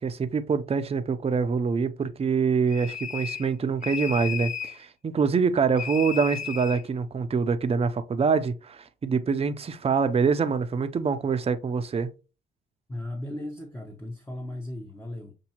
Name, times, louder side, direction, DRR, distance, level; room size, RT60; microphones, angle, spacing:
voice 1, 0.0-12.1, right 5 dB, 30° right, 0.6 m, -25 dB
sound 1, 2.7-3.5 3.8-4.8 5.8-6.8, left 8 dB, 40° left, 0.6 m, -34 dB
voice 2, 12.9-15.3, left 1 dB, 10° left, 0.9 m, -36 dB
7.0 x 2.7 x 2.9 m
cardioid pair, 90°, 20 cm